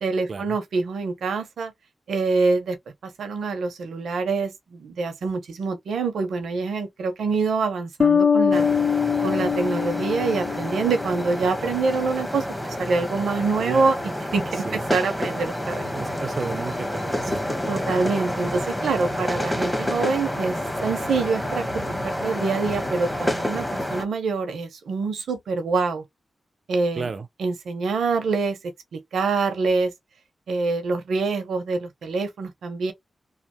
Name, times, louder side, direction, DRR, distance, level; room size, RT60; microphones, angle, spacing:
voice 1, 0.0-1.7 2.1-2.8 3.0-8.7 9.2-12.4 12.8-14.0 14.3-15.9 17.7-26.0 26.7-27.1 27.4-28.6 28.9-29.9 30.5-32.9, right 4 dB, 90° right, 0.8 m, -25 dB
sound 1, 8.0-11.3, left 6 dB, 55° left, 0.6 m, -22 dB
sound 2, 8.5-24.0, left 1 dB, 5° left, 1.2 m, -29 dB
voice 2, 13.6-13.9 14.6-14.8 15.9-17.5 27.0-27.3, right 4 dB, 65° right, 0.6 m, -32 dB
3.2 x 2.0 x 2.8 m
cardioid pair, 50°, 0 cm